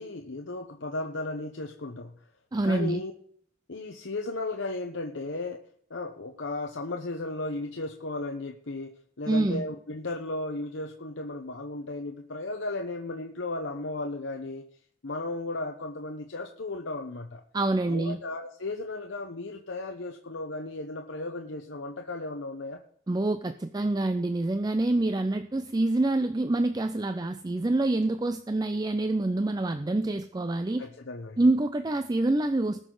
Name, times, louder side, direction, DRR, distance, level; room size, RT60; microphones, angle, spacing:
voice 1, 0.0-2.1 2.6-3.1 3.7-5.6 5.9-14.7 15.0-17.4 17.9-22.8 30.8-31.4, left 2 dB, 65° left, 3 dB, 0.9 m, -35 dB
voice 2, 2.5-3.0 9.3-9.6 17.5-18.2 23.1-30.9 31.4-32.8, right 2 dB, 20° right, 9 dB, 0.4 m, -26 dB
19.0 x 6.4 x 3.9 m, 0.63 s
head